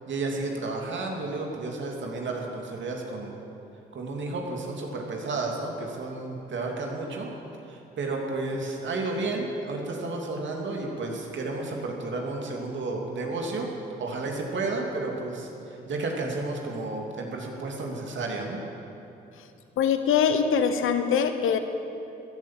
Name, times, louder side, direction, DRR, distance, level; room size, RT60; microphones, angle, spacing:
voice 1, 0.1-3.3 3.9-7.3 7.7-13.7 14.0-15.5 15.9-18.6, right 3 dB, 65° right, 0 dB, 2.7 m, -32 dB
voice 2, 19.8-21.6, left 7 dB, 75° left, 9 dB, 1.1 m, -23 dB
14.5 x 11.5 x 7.4 m, 2.8 s
supercardioid pair, 50°, 21 cm